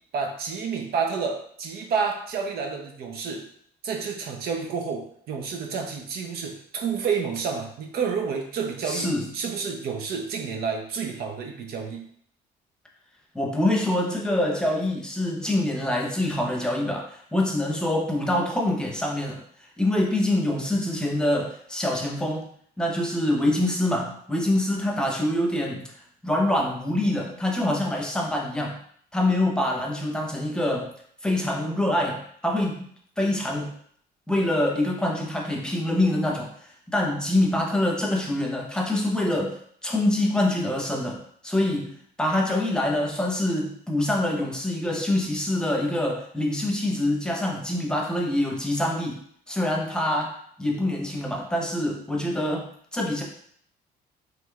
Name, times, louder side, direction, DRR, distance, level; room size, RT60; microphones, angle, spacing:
voice 1, 0.1-3.5 3.8-12.0, right 5 dB, 65° right, 3 dB, 0.7 m, -29 dB
voice 2, 8.8-9.3 13.3-19.4 19.8-22.5 22.8-25.8 26.2-28.8 29.1-30.9 31.2-32.8 33.2-33.7 34.3-41.9 42.2-49.2 49.5-53.2, left 1 dB, 5° left, -1 dB, 0.9 m, -25 dB
5.0 x 3.1 x 2.4 m, 0.63 s
cardioid pair, 110°, 17 cm